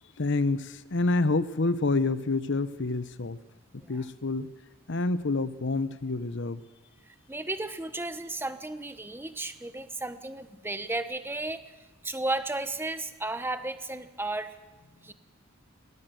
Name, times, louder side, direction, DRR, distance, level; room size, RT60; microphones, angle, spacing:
voice 1, 0.2-3.4 3.7-4.5 4.9-6.6, left 3 dB, 60° left, 14 dB, 0.9 m, -28 dB
voice 2, 7.3-11.6 12.0-14.6 15.0-15.1, right 2 dB, 10° right, 10 dB, 1.1 m, -34 dB
19.5 x 18.5 x 7.8 m, 1.2 s
head